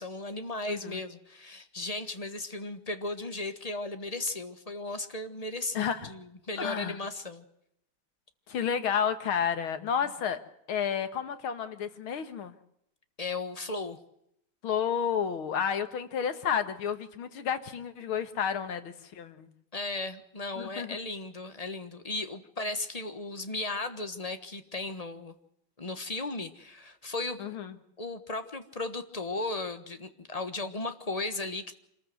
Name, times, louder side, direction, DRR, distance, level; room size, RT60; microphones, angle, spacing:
voice 1, 0.0-7.4 13.2-14.0 19.7-25.4 25.8-27.4 28.0-31.8, left 2 dB, 20° left, 9 dB, 1.1 m, -36 dB
voice 2, 0.7-1.0 5.7-6.1 6.6-7.0 8.5-10.4 10.7-12.6 14.6-19.5 20.6-21.0 27.4-27.8, left 7 dB, 80° left, 9 dB, 2.3 m, -31 dB
26.0 x 14.5 x 7.8 m, 0.77 s
omnidirectional pair, 2.3 m